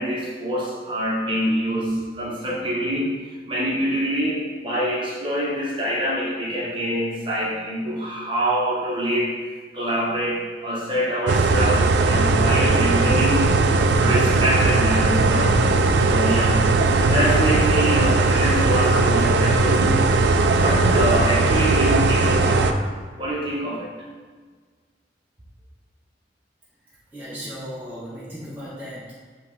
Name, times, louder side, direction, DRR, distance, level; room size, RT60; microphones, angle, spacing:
voice 1, 0.0-3.2 3.5-9.4 9.7-13.6 14.0-16.6 16.9-22.9 23.2-23.9, equal, 25° right, -5 dB, 1.2 m, -25 dB
sound 1, 11.3-22.7, right 3 dB, 65° right, 0.4 m, -18 dB
voice 2, 27.1-29.1, equal, 10° right, -9 dB, 0.9 m, -36 dB
8.0 x 3.2 x 3.9 m, 1.5 s
head